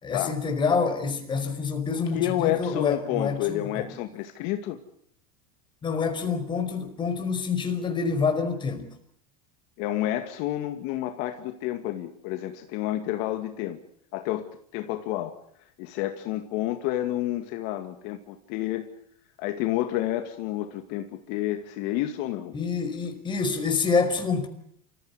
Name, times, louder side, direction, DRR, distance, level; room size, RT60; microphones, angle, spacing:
voice 1, 0.0-3.9 5.8-8.9 22.5-24.5, left 5 dB, 25° left, 4.9 m, -27 dB
voice 2, 2.1-4.8 9.8-13.8 14.1-14.5 14.7-15.4 15.8-18.9 19.4-22.5, left 14 dB, 60° left, 2.2 m, -29 dB
27.5 x 15.5 x 9.7 m
supercardioid pair, 115°, 20 cm